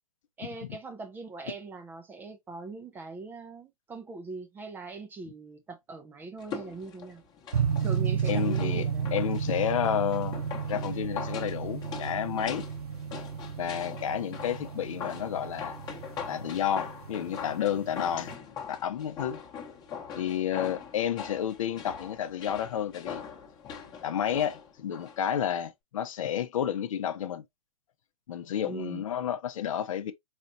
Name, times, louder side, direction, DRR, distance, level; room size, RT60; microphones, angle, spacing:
voice 1, 0.4-7.2 7.8-9.1 28.6-29.0, right 3 dB, 10° right, 0.4 m, -41 dB
sound 1, 6.4-25.2 25.5-25.6, left 6 dB, 20° left, 0.9 m, -42 dB
sound 2, 7.5-18.3, right 7 dB, 90° right, 0.5 m, -33 dB
voice 2, 8.3-10.4 10.6-12.6 13.6-15.8 16.3-18.3 18.7-19.4 20.2-23.2 24.0-27.4 28.3-30.1, left 9 dB, 60° left, 0.6 m, -31 dB
4.2 x 2.9 x 2.6 m
hypercardioid pair, 130°, 19 cm